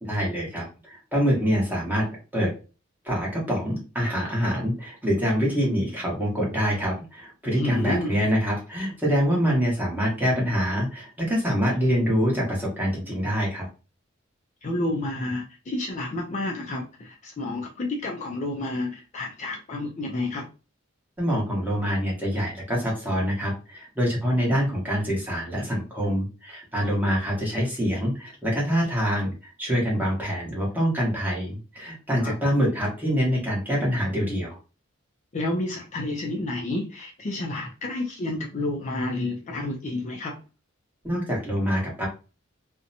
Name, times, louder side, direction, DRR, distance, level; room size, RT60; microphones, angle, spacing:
voice 1, 0.0-2.5 3.0-13.7 21.2-34.6 41.0-42.1, equal, 10° right, -4 dB, 1.0 m, -25 dB
voice 2, 7.4-8.1 14.6-20.5 32.2-32.4 35.3-40.4, left 2 dB, 35° left, 0 dB, 0.4 m, -30 dB
2.6 x 2.1 x 2.6 m, 0.33 s
head